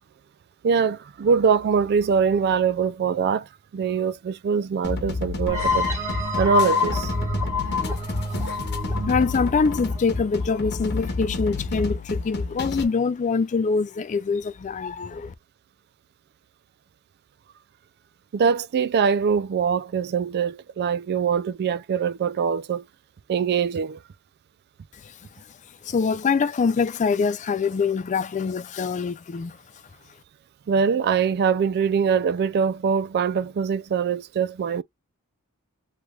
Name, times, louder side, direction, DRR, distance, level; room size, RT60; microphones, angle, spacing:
voice 1, 0.6-3.5 3.7-5.9 6.4-7.1 18.3-22.8 23.3-24.0 30.7-34.8, right 6 dB, 50° right, 0.3 m, -23 dB
sound 1, 4.8-12.8, left 3 dB, 50° left, 1.0 m, -30 dB
sound 2, 5.5-11.0, left 3 dB, 15° right, 1.4 m, -27 dB
voice 2, 7.7-8.5 9.1-15.3 25.8-29.6, left 5 dB, 35° left, 0.3 m, -24 dB
3.2 x 3.1 x 2.3 m
head